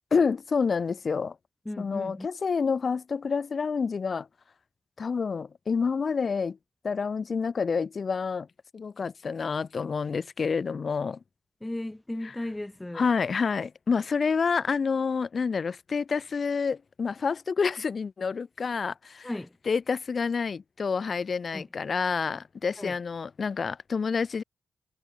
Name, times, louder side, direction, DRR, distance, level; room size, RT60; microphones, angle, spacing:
voice 1, 0.0-1.4 1.8-4.3 5.0-6.6 6.8-8.5 8.7-11.2 12.2-12.3 12.9-19.3 19.7-24.4, left 5 dB, 50° left, 4.2 m, -28 dB
voice 2, 1.6-2.3 11.6-13.1 19.2-19.5 21.5-21.6 22.8-23.0, left 1 dB, 10° left, 2.9 m, -35 dB
cardioid pair, 95°, 0 cm